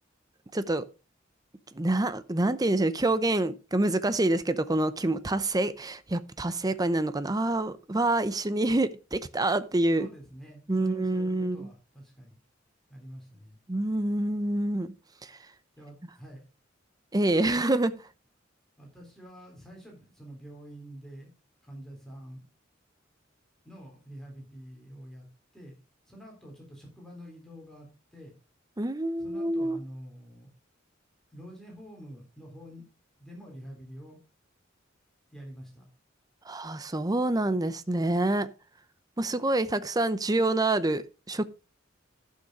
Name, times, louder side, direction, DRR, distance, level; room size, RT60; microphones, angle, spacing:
voice 1, 0.5-0.8 1.7-10.1 10.7-11.7 13.7-14.9 15.2-15.3 17.1-18.0 28.8-29.8 36.5-38.5 39.2-41.4, right 2 dB, 20° right, 0.7 m, -27 dB
voice 2, 10.0-12.4 12.9-13.6 15.7-16.4 18.8-21.3 21.6-22.4 23.6-25.3 25.5-25.7 26.1-28.3 29.2-30.5 31.3-32.8 33.2-34.2 35.3-35.9, equal, 5° left, 3.7 m, -47 dB
11.5 x 6.6 x 4.8 m
head